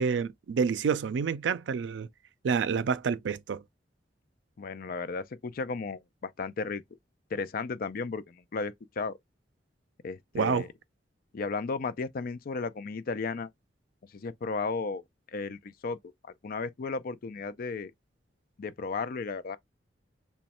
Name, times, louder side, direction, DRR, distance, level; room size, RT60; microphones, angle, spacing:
voice 1, 0.0-2.1 2.4-3.6 10.3-10.6, right 6 dB, 80° right, 0.4 m, -28 dB
voice 2, 4.6-6.8 7.3-9.2 10.0-10.7 11.3-13.5 14.1-15.0 15.3-16.0 16.4-17.9 18.6-19.6, left 4 dB, 55° left, 0.4 m, -34 dB
3.1 x 2.2 x 4.2 m
head